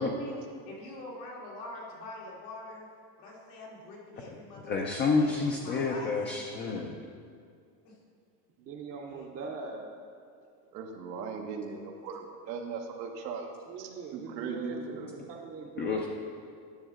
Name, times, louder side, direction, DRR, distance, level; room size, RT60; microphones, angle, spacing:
voice 1, 0.0-2.9 3.2-6.2 7.8-7.9 9.1-9.5, left 2 dB, 85° left, -3 dB, 2.3 m, -45 dB
voice 2, 4.7-6.9 15.8-16.0, left 4 dB, 25° left, 0 dB, 0.4 m, -29 dB
voice 3, 8.6-9.9 13.7-16.1, right 5 dB, 30° right, -1 dB, 0.7 m, -42 dB
voice 4, 10.7-15.1, right 5 dB, 90° right, 2 dB, 1.1 m, -39 dB
10.5 x 6.2 x 3.7 m, 2.2 s
supercardioid pair, 130°, 49 cm